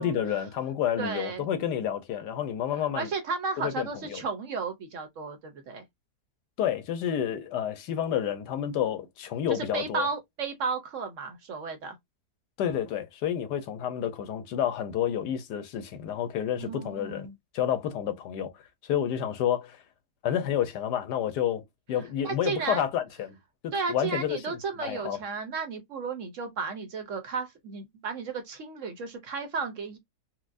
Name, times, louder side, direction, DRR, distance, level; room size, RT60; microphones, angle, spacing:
voice 1, 0.0-3.1 3.6-4.2 6.6-10.1 12.6-17.3 17.5-18.5 18.8-19.8 20.2-21.6 21.9-23.4 23.6-25.2, left 9 dB, 85° left, 1.3 m, -29 dB
voice 2, 1.0-1.5 2.7-5.8 9.5-12.0 16.6-17.3 22.2-22.8 23.7-30.0, right 5 dB, 60° right, 0.9 m, -33 dB
4.4 x 2.1 x 2.5 m
omnidirectional pair, 1.7 m